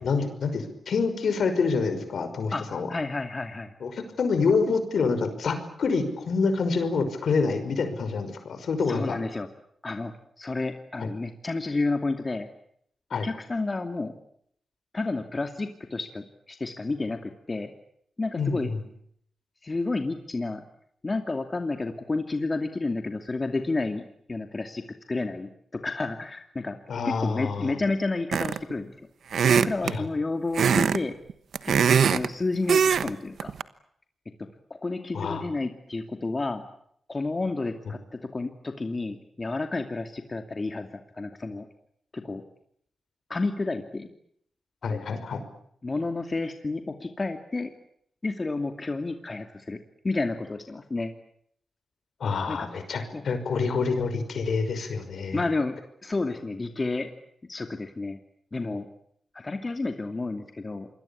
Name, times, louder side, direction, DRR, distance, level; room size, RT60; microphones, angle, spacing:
voice 1, 0.0-2.9 3.8-9.2 11.0-11.1 13.1-13.3 18.4-18.8 26.9-27.7 29.8-30.1 35.1-35.4 44.8-45.4 52.2-55.4, left 4 dB, 70° left, 9 dB, 5.6 m, -27 dB
voice 2, 2.9-3.7 8.9-9.5 9.8-12.5 13.1-14.1 14.9-17.7 18.2-18.7 19.6-20.6 21.0-24.0 24.3-26.8 27.0-29.1 29.5-31.1 31.6-33.5 34.7-36.6 37.1-38.0 38.3-41.7 42.1-42.4 43.3-44.1 44.9-45.0 45.8-47.7 48.2-49.8 50.0-51.1 52.5-52.7 53.1-53.3 55.3-55.7 56.0-57.1 57.5-58.2 58.5-58.9 59.3-60.9, left 3 dB, 35° left, 6 dB, 2.6 m, -30 dB
sound 1, 28.3-28.7 29.3-30.0 30.5-31.0 31.3-32.3 32.7-33.1 33.4-33.6, right 7 dB, 75° right, 1.1 m, -21 dB
27.0 x 21.5 x 8.7 m, 0.70 s
cardioid pair, 55°, 0 cm